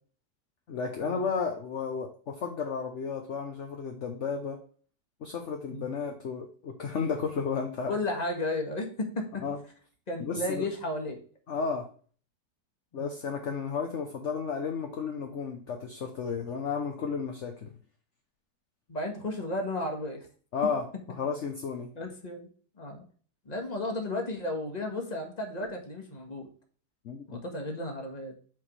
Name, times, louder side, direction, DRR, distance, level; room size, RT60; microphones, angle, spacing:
voice 1, 0.7-4.6 5.2-7.9 9.4-9.6 10.2-10.7 11.5-11.9 12.9-17.7 20.5-20.9 21.1-21.9 27.0-27.4, left 5 dB, 50° left, 3 dB, 1.1 m, -33 dB
voice 2, 7.9-9.4 10.1-11.2 12.9-13.1 18.9-20.3 21.9-22.5 22.8-23.0 23.4-26.5 27.3-28.3, left 2 dB, 25° left, 2 dB, 1.6 m, -34 dB
5.9 x 4.8 x 4.8 m, 0.43 s
omnidirectional pair, 1.8 m